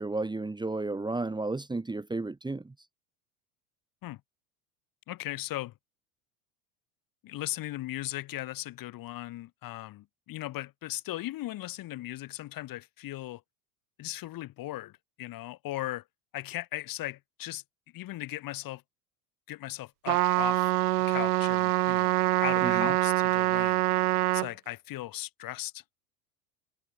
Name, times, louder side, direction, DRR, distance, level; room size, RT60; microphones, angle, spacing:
voice 1, 0.0-2.7 22.6-22.9, right 2 dB, 10° right, 1.8 m, -33 dB
voice 2, 5.1-5.7 7.2-13.4 14.0-16.0 16.3-17.6 17.9-18.8 19.5-20.7 21.1-22.2 22.4-23.8 24.3-26.0, left 16 dB, 50° left, 4.4 m, -38 dB
Trumpet, 20.1-24.5, right 18 dB, 85° right, 0.6 m, -25 dB
hypercardioid pair, 90°, 44 cm